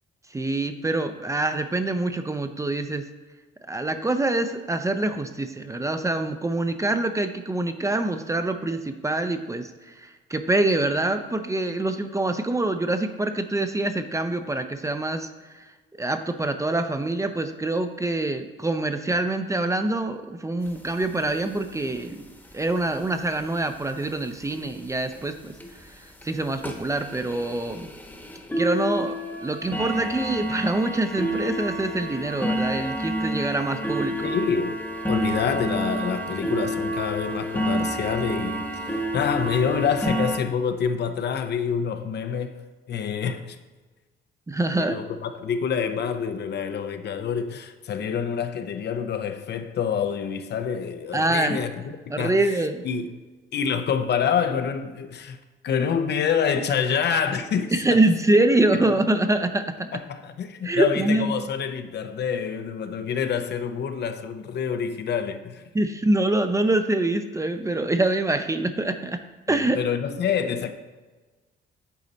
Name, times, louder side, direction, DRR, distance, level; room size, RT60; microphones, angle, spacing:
voice 1, 0.3-3.0 3.6-9.7 10.0-15.3 16.0-22.2 22.5-25.5 26.2-27.9 28.6-29.2 29.4-34.3 44.5-45.0 51.1-51.6 52.1-52.8 57.7-59.9 60.6-61.5 65.7-69.2 69.5-69.8, right 2 dB, 15° right, 0.5 m, -25 dB
sound 1, 20.7-20.8 21.0-21.1 21.3-21.5 21.8-22.2 22.9-23.0 23.5-23.6 24.0-24.1 24.5-24.6 25.1-25.2 25.6-25.8 26.2-26.3 26.6-40.4, equal, 10° left, 1.1 m, -29 dB
voice 2, 34.2-34.8 35.1-43.6 44.7-52.6 52.8-53.1 53.5-55.4 55.6-58.0 58.7-58.9 59.9-65.6 69.5-70.7, left 7 dB, 60° left, 0.6 m, -27 dB
8.4 x 4.1 x 4.0 m
cardioid pair, 90°, 20 cm